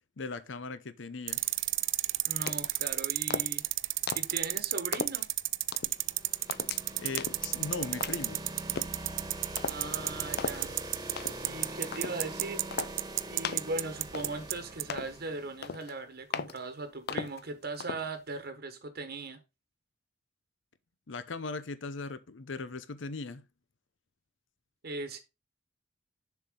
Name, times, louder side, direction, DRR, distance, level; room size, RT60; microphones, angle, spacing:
voice 1, 0.2-1.4 6.9-8.4 21.1-23.4, left 3 dB, 90° left, 0.8 m, -39 dB
sound 1, 1.3-14.5 14.8-14.9, right 18 dB, 80° right, 0.4 m, -30 dB
voice 2, 2.2-3.6 4.1-5.3 9.7-10.7 11.4-12.8 13.3-19.4 24.8-25.2, right 3 dB, 60° right, 1.2 m, -39 dB
sound 2, 2.5-2.8 3.3-3.7 4.1-4.4 4.9-5.3 5.7-6.0 6.5-6.8 7.2-7.5 8.0-8.4 8.8-9.0 9.6-9.8 10.4-10.6 11.2-11.5 11.9-12.2 12.7-13.0 13.4-13.7 14.1-14.6 14.9-15.2 15.6-15.9 16.3-16.6 17.1-17.4 17.8-18.1, left 6 dB, 60° left, 0.5 m, -37 dB
sound 3, 5.8-15.7, right 2 dB, 20° right, 1.3 m, -43 dB
7.2 x 5.7 x 3.7 m
head